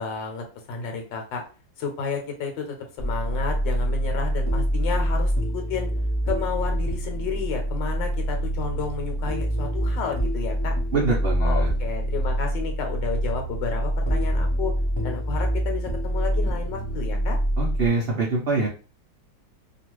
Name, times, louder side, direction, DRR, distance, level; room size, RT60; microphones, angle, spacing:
voice 1, 0.0-1.4 1.8-5.9 6.3-10.7 11.4-14.7 15.0-17.4, left 6 dB, 75° left, 3 dB, 1.4 m, -32 dB
sound 1, 3.0-17.9, right 1 dB, 35° left, 0.4 m, -25 dB
voice 2, 10.9-11.7 17.6-18.7, right 3 dB, 70° right, -3 dB, 0.5 m, -24 dB
3.0 x 2.3 x 3.0 m, 0.35 s
omnidirectional pair, 2.0 m